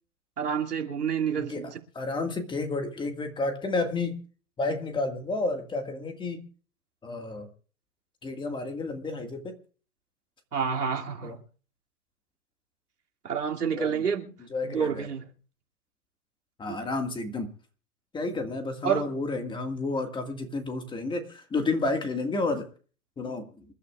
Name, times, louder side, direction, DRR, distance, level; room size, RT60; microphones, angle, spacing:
voice 1, 0.4-1.7 10.5-11.4 13.2-14.4 14.6-15.2 16.7-16.8 18.8-19.1, right 7 dB, 85° right, 2.8 m, -28 dB
voice 2, 1.4-4.2 4.6-6.4 7.0-7.5 8.2-9.6 11.2-11.4 13.7-13.9 14.5-15.1 16.6-17.5 18.1-22.7 23.2-23.7, left 3 dB, 10° left, 1.9 m, -31 dB
27.5 x 12.5 x 2.4 m
hypercardioid pair, 135°, 45 cm